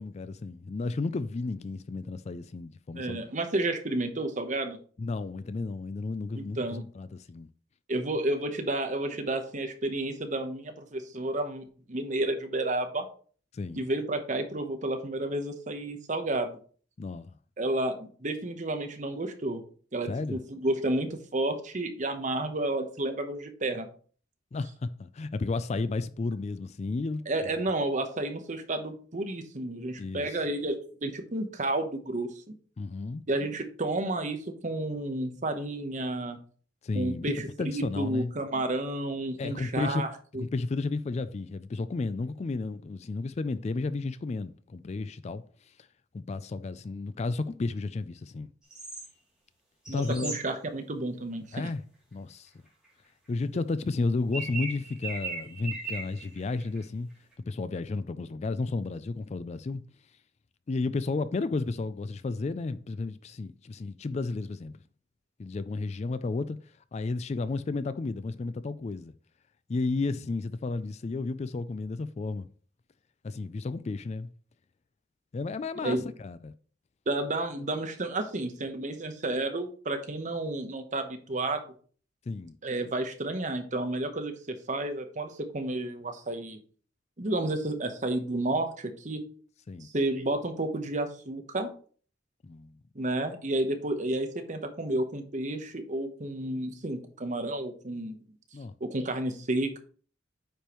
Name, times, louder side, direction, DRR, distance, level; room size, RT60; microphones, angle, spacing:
voice 1, 0.0-3.2 5.0-7.5 13.5-13.8 17.0-17.3 20.1-20.4 24.5-27.2 30.0-30.4 32.8-33.2 36.8-37.3 37.6-38.3 39.4-40.0 40.3-45.4 46.1-48.5 49.9-50.4 51.5-51.8 52.1-52.5 53.3-57.1 57.5-59.8 60.7-64.8 65.4-66.6 66.9-69.1 69.7-72.5 73.2-74.3 75.3-76.5 82.3-82.6 89.7-89.9 92.4-92.7 98.5-98.7, left 3 dB, 35° left, 0.3 m, -32 dB
voice 2, 2.9-4.8 6.3-6.8 7.9-13.1 13.8-16.6 17.6-19.6 19.9-23.9 27.3-32.5 33.3-36.4 36.9-40.1 40.3-40.4 49.9-51.7 75.8-76.1 77.1-81.6 82.6-86.6 87.2-89.2 89.8-91.7 92.9-98.2 98.8-99.8, right 2 dB, 40° right, 1.0 m, -31 dB
sound 1, 48.7-49.1 49.9-50.4 54.0-54.1 54.3-56.8 57.3-57.4, right 3 dB, 5° right, 2.8 m, -37 dB
8.9 x 5.1 x 3.0 m
head